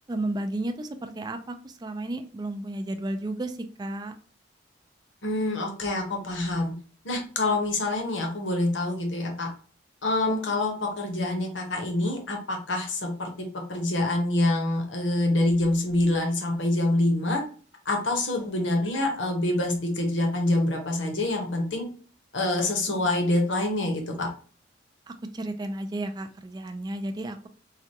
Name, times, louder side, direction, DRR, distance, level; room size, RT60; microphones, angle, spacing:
voice 1, 0.1-4.1 25.1-27.5, right 1 dB, 20° right, 6 dB, 0.3 m, -33 dB
voice 2, 5.2-6.7 7.0-9.5 10.0-13.3 13.7-17.4 17.8-21.9 22.3-24.3, left 2 dB, 75° left, 2 dB, 1.0 m, -26 dB
4.8 x 2.3 x 2.7 m, 0.41 s
head